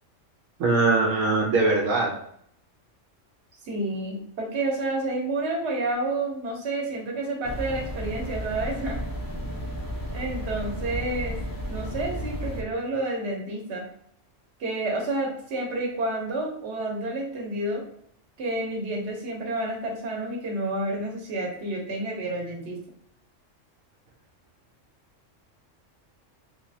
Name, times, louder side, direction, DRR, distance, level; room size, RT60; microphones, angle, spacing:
voice 1, 0.6-2.1, right 3 dB, 85° right, -2 dB, 1.1 m, -21 dB
voice 2, 3.6-9.0 10.1-11.4 11.7-13.8 14.6-17.8 18.4-22.8, right 2 dB, 60° right, -1 dB, 1.2 m, -29 dB
sound 1, 7.4-12.6, equal, 30° left, 0.4 m, -33 dB
3.5 x 3.1 x 2.7 m, 0.66 s
omnidirectional pair, 1.3 m